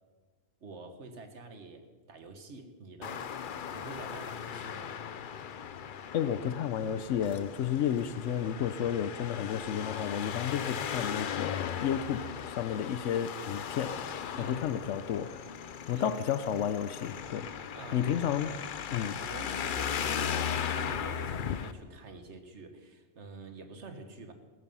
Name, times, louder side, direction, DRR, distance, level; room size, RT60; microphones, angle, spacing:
voice 1, 0.6-3.3 3.7-5.0 14.4-14.7 15.9-16.1 17.5-18.6 19.2-24.3, right 3 dB, 70° right, 7 dB, 1.7 m, -47 dB
Traffic noise roadway noise, 3.0-21.7, left 8 dB, 50° left, 0.7 m, -37 dB
voice 2, 6.1-12.3 12.6-13.9 14.4-15.3 15.9-17.5 17.9-18.5 18.9-19.2, left 9 dB, 80° left, 14 dB, 1.0 m, -31 dB
15.0 x 13.0 x 5.5 m, 1.4 s
omnidirectional pair, 1.2 m